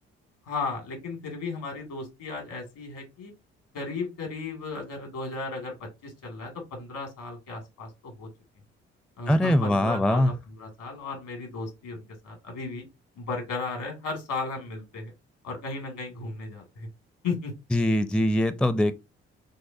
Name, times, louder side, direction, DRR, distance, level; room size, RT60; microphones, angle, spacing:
voice 1, 0.5-3.3 3.7-8.3 9.2-12.9 13.2-15.1 15.4-16.9 17.2-17.5, left 3 dB, 75° left, 2.1 m, -35 dB
voice 2, 9.3-10.3 17.7-18.9, left 1 dB, 5° left, 0.4 m, -22 dB
6.4 x 2.2 x 2.6 m
hypercardioid pair, 45°, 32 cm